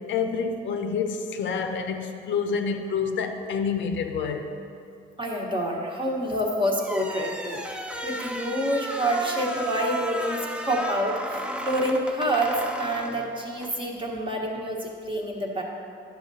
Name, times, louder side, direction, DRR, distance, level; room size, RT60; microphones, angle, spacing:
voice 1, 0.0-4.5, left 5 dB, 70° left, 5 dB, 0.6 m, -28 dB
voice 2, 5.2-15.6, right 1 dB, 25° right, -1 dB, 1.2 m, -27 dB
sound 1, 6.8-13.8, equal, 5° right, 0.5 m, -34 dB
10.5 x 6.4 x 2.7 m, 2.5 s
cardioid pair, 90°, 20 cm